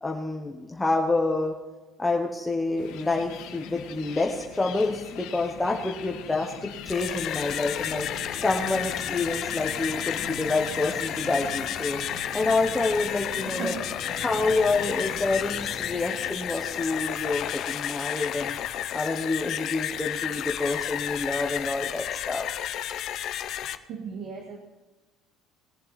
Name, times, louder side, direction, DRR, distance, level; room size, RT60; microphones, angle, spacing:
voice 1, 0.0-1.5 2.0-8.1 8.4-12.0 12.3-13.7 14.2-18.6 18.9-22.4, left 3 dB, 10° left, 0 dB, 1.0 m, -28 dB
sound 1, 2.8-15.3, left 9 dB, 85° left, 1.7 m, -43 dB
sound 2, 6.7-23.8, left 11 dB, 50° left, 0.7 m, -32 dB
sound 3, 7.0-17.5, right 1 dB, 30° right, 3.1 m, -43 dB
voice 2, 13.4-13.8 23.8-24.6, right 5 dB, 50° right, 2 dB, 1.7 m, -36 dB
20.5 x 7.6 x 4.1 m, 1.2 s
cardioid pair, 155°, 0 cm